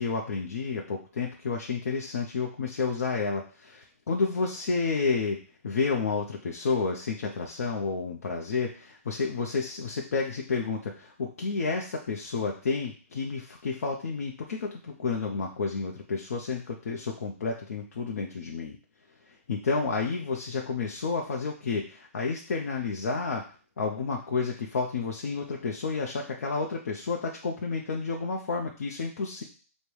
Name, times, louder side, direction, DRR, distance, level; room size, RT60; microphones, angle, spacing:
voice 1, 0.0-18.8 19.5-23.5 23.8-29.4, left 4 dB, 75° left, 1 dB, 0.7 m, -30 dB
5.1 x 2.2 x 4.7 m, 0.41 s
hypercardioid pair, 135°, 8 cm